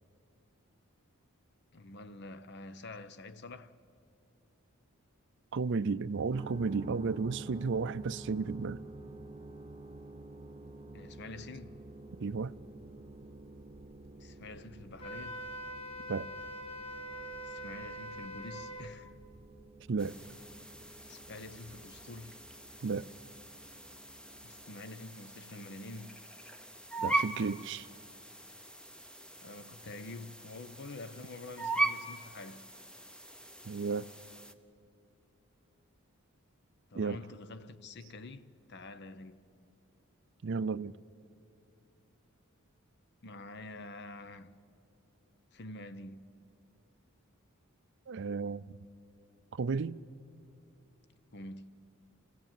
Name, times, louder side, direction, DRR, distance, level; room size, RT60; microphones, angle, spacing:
voice 1, 1.7-3.8 10.9-11.8 14.2-15.4 17.4-19.2 21.1-22.4 24.4-26.3 29.4-32.7 36.9-39.4 43.2-44.6 45.5-46.3 51.3-51.8, left 2 dB, 50° left, 0.8 m, -47 dB
voice 2, 5.5-8.8 12.2-12.6 16.1-16.3 19.9-20.2 22.8-23.1 27.0-27.9 33.6-34.1 36.9-37.2 40.4-40.9 48.1-48.8 49.5-50.0, right 4 dB, 55° right, 0.5 m, -33 dB
sound 1, 6.3-24.6, right 2 dB, 30° right, 0.7 m, -50 dB
Wind instrument woodwind instrument, 15.0-18.9, equal, 25° left, 1.3 m, -43 dB
sound 2, 20.0-34.5, right 2 dB, 5° left, 0.8 m, -40 dB
26.0 x 16.5 x 9.0 m
head